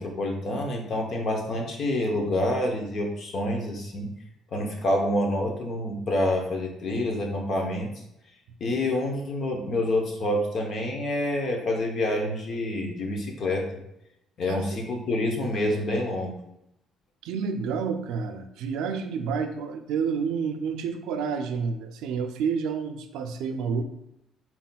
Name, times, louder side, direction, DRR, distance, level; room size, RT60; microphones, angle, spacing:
voice 1, 0.0-4.1 4.5-7.9 8.6-13.7 14.4-16.4, left 1 dB, 40° left, 1 dB, 0.8 m, -27 dB
voice 2, 17.2-23.8, right 6 dB, 85° right, 7 dB, 0.4 m, -29 dB
4.2 x 4.1 x 2.2 m, 0.83 s
cardioid pair, 170°, 0 cm